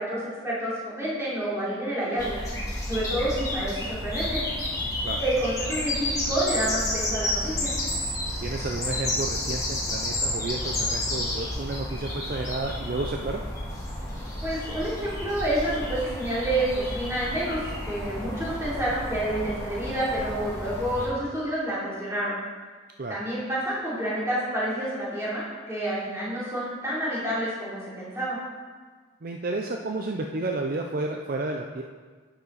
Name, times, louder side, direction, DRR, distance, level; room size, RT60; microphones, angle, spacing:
voice 1, 0.0-2.4 2.9-4.4 5.2-7.7 14.4-22.3 23.1-28.4, right 1 dB, 15° right, -9 dB, 3.1 m, -29 dB
sound 1, 2.2-21.1, left 1 dB, 15° left, 2.1 m, -31 dB
voice 2, 8.4-13.4 23.0-23.2 29.2-31.8, right 2 dB, 45° right, 2 dB, 0.5 m, -31 dB
10.5 x 7.1 x 4.0 m, 1.5 s
head